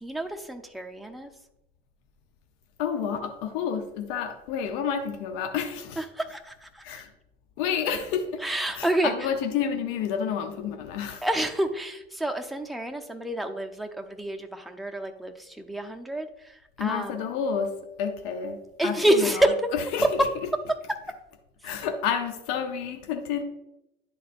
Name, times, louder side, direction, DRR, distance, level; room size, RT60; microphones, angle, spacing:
voice 1, 0.0-1.3 6.0-6.8 8.4-9.3 11.2-17.2 18.8-19.7 20.0-20.1, right 1 dB, ahead, 3 dB, 0.8 m, -28 dB
voice 2, 2.8-6.0 6.8-7.1 7.6-8.4 8.7-11.2 16.8-19.4 19.7-20.0 21.6-23.4, left 7 dB, 65° left, 5 dB, 0.9 m, -30 dB
11.0 x 4.0 x 2.6 m, 0.86 s
hypercardioid pair, 65°, 33 cm